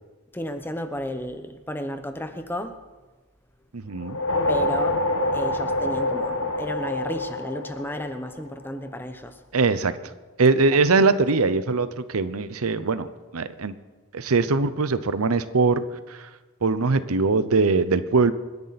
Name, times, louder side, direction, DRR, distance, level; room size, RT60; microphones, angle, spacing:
voice 1, 0.3-2.8 4.5-5.0 5.3-9.4, left 1 dB, 10° left, 0.9 m, -32 dB
voice 2, 3.7-4.2 9.5-9.9 10.4-13.1 13.3-13.7 14.1-15.8 16.1-16.2 16.6-18.3, right 4 dB, 90° right, 0.8 m, -21 dB
sound 1, 4.0-8.5, left 1 dB, 70° left, 1.4 m, -26 dB
26.5 x 10.5 x 4.2 m
head